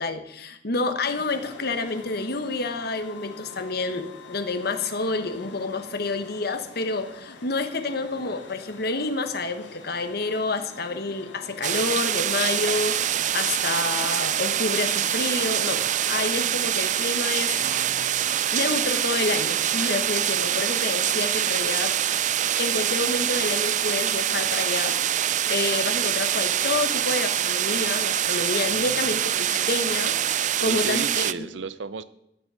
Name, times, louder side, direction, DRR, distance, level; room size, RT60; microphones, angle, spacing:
voice 1, 0.0-17.6 18.5-21.9 22.6-31.5, left 3 dB, 60° left, 9 dB, 1.3 m, -29 dB
sound 1, 1.1-16.0, left 4 dB, 90° left, 1.7 m, -45 dB
sound 2, 11.6-31.3, right 10 dB, 45° right, 0.4 m, -25 dB
sound 3, 17.5-19.7, right 1 dB, 60° right, 2.4 m, -47 dB
voice 2, 28.7-29.2 29.5-29.6 30.6-32.0, right 5 dB, 85° right, 15 dB, 0.6 m, -34 dB
14.5 x 6.2 x 8.8 m, 0.81 s
head